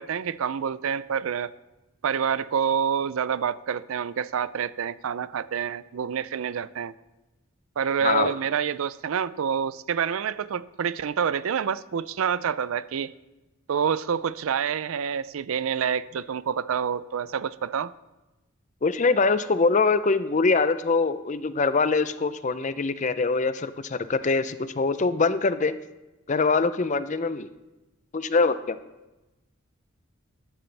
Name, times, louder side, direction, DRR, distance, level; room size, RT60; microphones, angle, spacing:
voice 1, 0.0-1.5 2.0-6.9 7.8-13.1 13.7-17.9, right 7 dB, 75° right, 0.4 m, -27 dB
voice 2, 18.8-25.7 26.3-27.5 28.1-28.8, left 4 dB, 35° left, 0.5 m, -23 dB
15.0 x 11.0 x 3.3 m
head